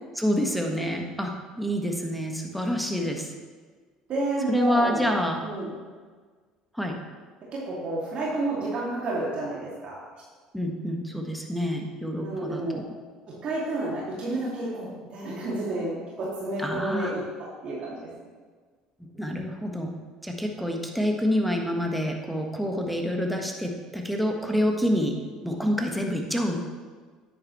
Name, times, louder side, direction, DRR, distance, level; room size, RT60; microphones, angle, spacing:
voice 1, 0.1-3.3 4.5-5.4 6.7-7.0 10.5-12.8 16.6-17.1 19.2-19.9 20.2-25.1 25.4-26.6, equal, ahead, 2 dB, 1.5 m, -27 dB
voice 2, 4.1-5.1 5.4-5.7 7.5-10.0 12.2-12.8 13.3-18.1, right 2 dB, 50° right, -6 dB, 2.5 m, -30 dB
9.9 x 8.8 x 3.2 m, 1.5 s
hypercardioid pair, 70°, 2 cm